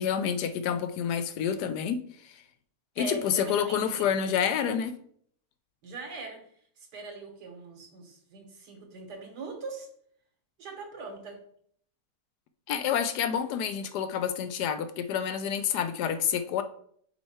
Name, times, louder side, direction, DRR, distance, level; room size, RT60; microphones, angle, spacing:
voice 1, 0.0-2.4 3.0-4.9 12.7-16.6, left 8 dB, 75° left, 9 dB, 1.1 m, -28 dB
voice 2, 3.0-4.1 5.8-6.4 6.8-9.9 10.6-11.4, right 3 dB, 75° right, 3 dB, 1.9 m, -41 dB
5.6 x 4.4 x 4.3 m, 0.62 s
omnidirectional pair, 1.8 m